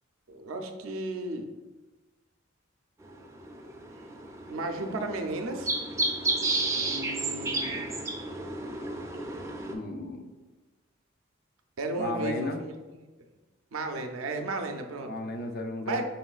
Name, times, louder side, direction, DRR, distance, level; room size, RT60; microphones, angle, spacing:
voice 1, 0.3-1.5 4.5-5.7 6.7-7.9 11.8-13.0 13.7-15.1 15.8-16.0, right 2 dB, 80° right, 5 dB, 0.5 m, -34 dB
sound 1, 3.0-9.7, right 2 dB, 15° right, 0.4 m, -32 dB
voice 2, 9.7-10.3 12.0-12.6 15.1-16.0, left 2 dB, 50° left, 4 dB, 0.4 m, -34 dB
5.5 x 3.1 x 2.3 m, 1.2 s
head